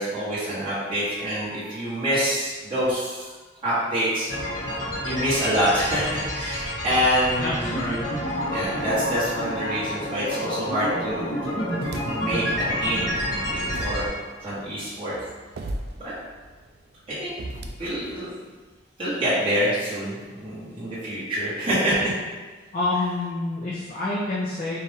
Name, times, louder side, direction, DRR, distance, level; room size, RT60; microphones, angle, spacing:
voice 1, 0.0-3.3 3.6-4.3 4.5-8.0 8.4-11.6 12.1-12.4 12.8-14.1 14.4-15.1 16.0-16.1 17.1-18.3 19.0-22.2, equal, 30° right, -12 dB, 1.4 m, -26 dB
sound 1, 4.3-14.1, equal, 75° left, 1.4 m, -29 dB
voice 2, 7.4-8.0 22.7-24.8, left 2 dB, 45° left, -7 dB, 0.7 m, -28 dB
sound 2, 11.2-12.5 12.9-18.2, right 1 dB, 60° right, 0.4 m, -39 dB
4.5 x 2.5 x 3.5 m, 1.3 s
head